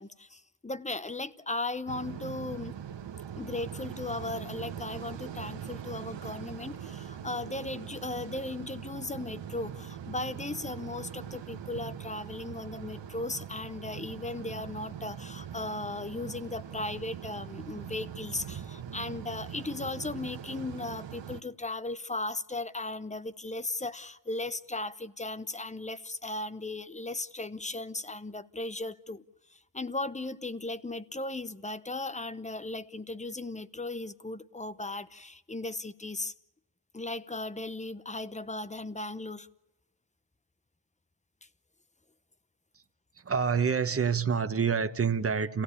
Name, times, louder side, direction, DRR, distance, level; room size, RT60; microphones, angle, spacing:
voice 1, 0.0-2.8 3.4-29.2 29.5-36.3 36.9-39.5, left 2 dB, 15° left, 0.8 m, -37 dB
sound 1, 1.9-21.4, right 9 dB, 70° right, 1.2 m, -42 dB
voice 2, 43.1-45.6, right 6 dB, 30° right, 1.1 m, -27 dB
29.0 x 16.5 x 8.5 m
wide cardioid pair, 125°, 44 cm